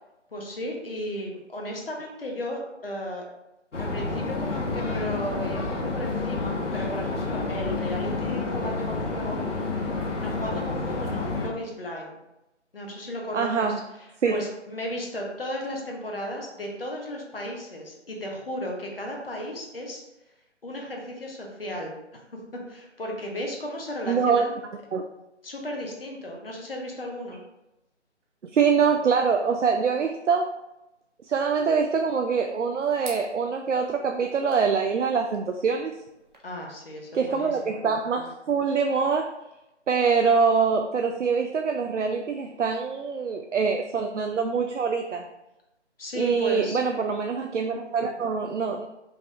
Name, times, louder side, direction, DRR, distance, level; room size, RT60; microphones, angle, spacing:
voice 1, 0.3-3.2 3.8-9.6 10.2-12.2 12.7-13.7 14.3-20.0 20.6-21.9 22.5-24.5 25.4-27.4 36.4-37.8 46.0-46.8, equal, 50° left, 0 dB, 1.0 m, -34 dB
sound 1, 3.7-11.5, left 3 dB, 80° left, 0.9 m, -29 dB
voice 2, 13.3-13.8 14.2-14.4 24.1-24.5 24.9-25.0 28.5-30.5 31.2-35.9 37.1-39.3 39.9-45.2 46.2-48.9, right 5 dB, 80° right, 4 dB, 0.5 m, -24 dB
sound 2, 31.3-36.4, right 2 dB, 40° right, 0.9 m, -50 dB
5.0 x 3.3 x 2.4 m, 0.94 s
figure-of-eight pair, 155°, 36 cm